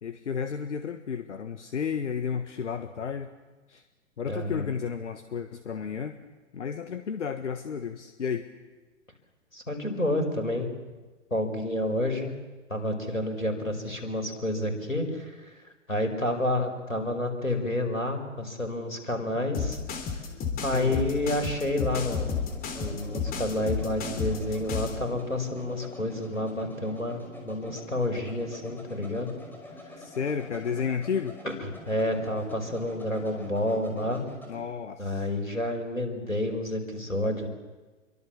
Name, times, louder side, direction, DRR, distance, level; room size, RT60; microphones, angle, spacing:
voice 1, 0.0-3.3 3.7-3.8 4.2-6.2 6.5-8.5 20.7-21.0 30.0-31.3 34.5-35.3, left 6 dB, 65° left, 9 dB, 1.5 m, -32 dB
voice 2, 4.3-4.7 9.5-10.7 11.3-12.3 12.7-15.6 15.9-19.8 20.6-22.4 22.8-29.3 31.4-34.2 35.0-37.5, left 1 dB, 90° left, 5 dB, 5.2 m, -29 dB
sound 1, 19.5-25.0, left 6 dB, 20° left, 3.3 m, -31 dB
sound 2, 19.8-34.7, left 1 dB, 5° left, 5.4 m, -47 dB
27.5 x 23.5 x 7.3 m, 1.3 s
figure-of-eight pair, 110°, 39 cm